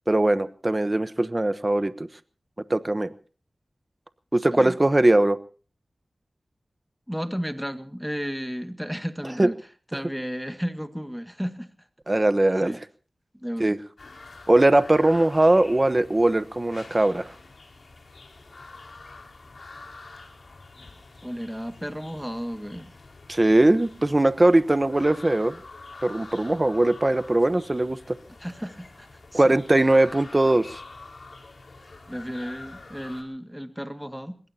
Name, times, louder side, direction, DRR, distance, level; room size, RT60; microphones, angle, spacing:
voice 1, 0.1-2.1 2.7-3.1 4.3-5.4 9.4-9.5 12.1-12.9 13.6-13.8 14.5-17.3 23.3-25.6 26.0-28.2 29.3-30.8, right 1 dB, 30° right, 12 dB, 1.0 m, -20 dB
voice 2, 7.1-9.6 9.9-11.7 12.6-12.8 13.4-13.8 21.2-22.9 28.4-29.5 32.1-34.4, equal, 5° right, 8 dB, 2.0 m, -33 dB
sound 1, 14.0-33.2, left 3 dB, 70° left, 4.8 m, -46 dB
23.5 x 21.5 x 2.9 m, 0.40 s
wide cardioid pair, 55°, 0 cm